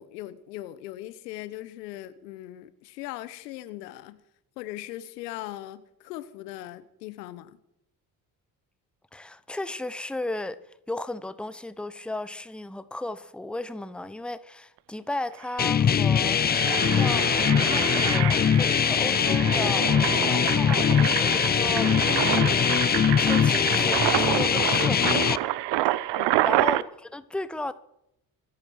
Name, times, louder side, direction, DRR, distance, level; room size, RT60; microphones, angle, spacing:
voice 1, 0.0-4.2 4.6-7.6 26.1-26.4, left 15 dB, 80° left, 14 dB, 1.0 m, -39 dB
voice 2, 9.1-10.6 10.9-16.4 16.9-17.3 17.7-19.9 20.2-20.9 21.2-21.9 22.2-22.8 23.2-25.5 25.8-26.0 26.4-27.7, left 2 dB, ahead, 14 dB, 0.9 m, -35 dB
Engine, 15.1-15.2 15.4-15.6 16.1-26.8, right 16 dB, 60° right, 0.7 m, -28 dB
sound 1, 15.6-25.4, left 8 dB, 20° left, 0.4 m, -22 dB
25.5 x 8.7 x 4.7 m, 0.81 s
hypercardioid pair, 50°, 48 cm